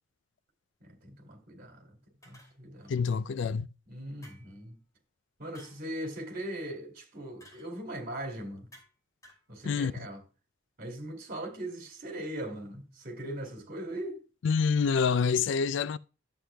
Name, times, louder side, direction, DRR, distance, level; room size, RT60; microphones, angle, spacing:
voice 1, 0.8-2.0 2.2-2.9 3.9-4.8 5.4-8.7 9.5-10.2 10.8-14.2, right 1 dB, 50° right, 2.5 m, -40 dB
sound 1, 2.2-2.9 4.2-4.7 5.5-5.9 7.4-7.7 8.7-9.0 9.2-9.5, equal, 20° left, 2.9 m, -56 dB
voice 2, 2.9-3.7 9.7-10.1 14.4-16.0, left 5 dB, 65° left, 0.4 m, -27 dB
11.5 x 7.8 x 2.2 m
head